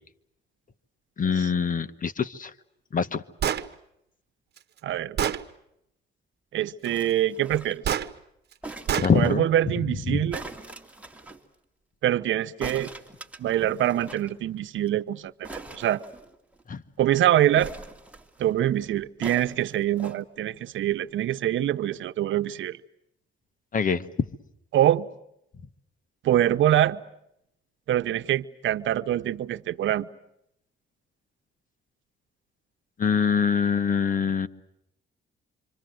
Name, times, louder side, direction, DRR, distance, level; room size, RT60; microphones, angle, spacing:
voice 1, 1.2-2.5 2.9-3.2 9.0-9.5 10.1-10.2 16.7-16.8 23.7-24.3 33.0-34.5, left 6 dB, 40° left, 1.5 m, -24 dB
Gunshot gunfire, 3.4-3.7 4.6-4.7 5.2-5.4 7.8-8.1 8.9-9.1, right 9 dB, 55° right, 1.3 m, -25 dB
voice 2, 4.8-5.3 6.5-7.9 9.1-10.4 12.0-12.9 13.4-16.0 17.0-17.7 18.4-22.8 24.7-25.1 26.2-27.0 27.9-30.1, right 12 dB, 75° right, 1.0 m, -24 dB
sound 1, 6.8-7.9 8.6-9.4 10.3-11.4 12.6-14.3 14.6-14.7 14.9-15.0 15.4-16.6 17.6-18.5 19.2-20.2 20.9-21.0, right 2 dB, 5° right, 2.8 m, -42 dB
26.5 x 26.0 x 8.0 m
cardioid pair, 90°, 20 cm